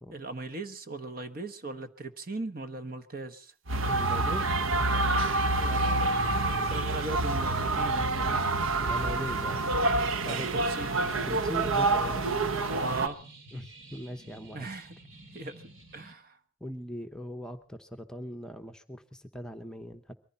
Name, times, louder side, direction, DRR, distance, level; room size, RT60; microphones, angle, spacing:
voice 1, 0.1-3.5 5.6-6.1 6.7-8.4 10.2-10.9 12.7-13.2 14.5-15.0 15.3-16.4, right 2 dB, 45° right, 9 dB, 1.1 m, -39 dB
sound 1, 3.7-13.1, right 2 dB, 90° right, 1.0 m, -27 dB
voice 2, 3.9-4.5 6.7-6.9 8.8-9.7 10.2-10.5 11.2-12.2 13.5-14.7 16.6-20.1, equal, 5° left, 5 dB, 1.0 m, -40 dB
sound 2, 10.3-16.1, right 2 dB, 75° right, 2.8 m, -51 dB
23.0 x 15.0 x 4.2 m, 0.39 s
head